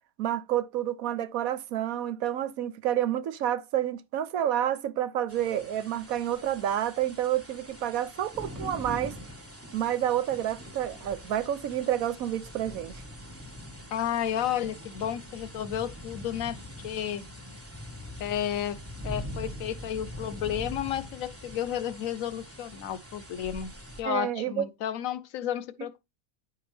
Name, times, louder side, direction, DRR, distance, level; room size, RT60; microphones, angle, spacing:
voice 1, 0.2-9.2 9.7-13.0 24.0-24.7, right 11 dB, 75° right, 1.2 m, -29 dB
sound 1, 5.3-24.0, left 1 dB, 10° right, 1.4 m, -43 dB
voice 2, 13.9-16.6 16.8-17.2 18.2-18.8 19.0-23.7 24.0-26.0, left 10 dB, 75° left, 1.0 m, -32 dB
9.9 x 4.7 x 3.3 m
omnidirectional pair, 1.5 m